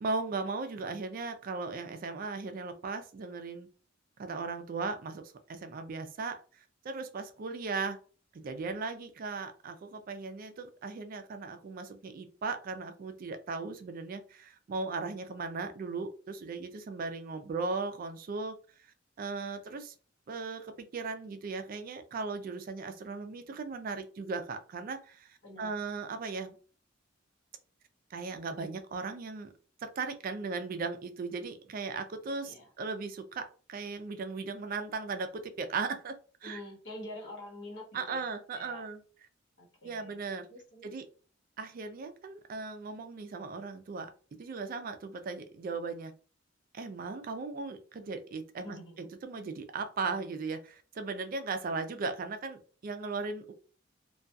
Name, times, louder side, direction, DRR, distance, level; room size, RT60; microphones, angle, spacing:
voice 1, 0.0-3.7 4.2-5.2 5.5-6.4 6.8-8.0 8.3-18.5 19.2-19.9 20.3-26.6 28.1-29.5 29.8-36.6 37.9-39.0 39.8-40.5 40.8-41.0 41.6-44.1 44.4-46.1 46.7-53.5, right 4 dB, 45° right, 0.3 m, -37 dB
voice 2, 25.4-25.8 32.4-32.7 36.4-38.3 38.5-38.8 39.6-40.2 40.5-40.9 48.6-49.0, left 1 dB, 65° left, 1.0 m, -46 dB
2.6 x 2.2 x 2.2 m
head